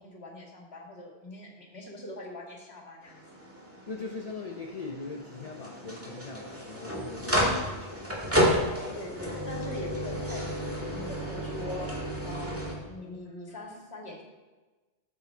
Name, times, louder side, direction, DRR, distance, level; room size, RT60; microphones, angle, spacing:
voice 1, 0.0-3.3 8.9-11.9 12.2-14.2, left 1 dB, 75° left, -1 dB, 2.3 m, -42 dB
sound 1, 3.0-12.7, equal, 15° right, 2.0 m, -31 dB
voice 2, 3.9-9.1 13.3-13.6, left 4 dB, 40° left, 2 dB, 0.8 m, -41 dB
11.5 x 7.6 x 4.4 m, 1.2 s
omnidirectional pair, 1.1 m